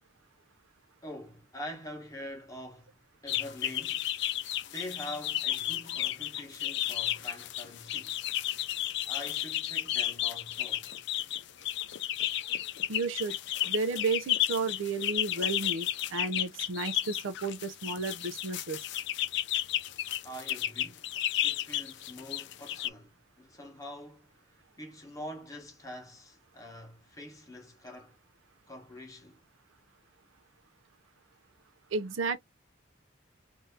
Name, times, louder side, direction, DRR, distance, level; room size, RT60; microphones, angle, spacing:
voice 1, 1.0-4.1 4.6-8.2 9.1-10.9 20.2-21.0 21.4-24.5 24.8-28.2 28.7-29.4, left 1 dB, 15° left, 1.1 m, -45 dB
sound 1, 3.3-22.9, left 13 dB, 55° left, 0.4 m, -33 dB
voice 2, 12.9-13.4 13.7-18.8 31.9-32.4, right 4 dB, 70° right, 0.6 m, -32 dB
2.7 x 2.7 x 3.5 m
head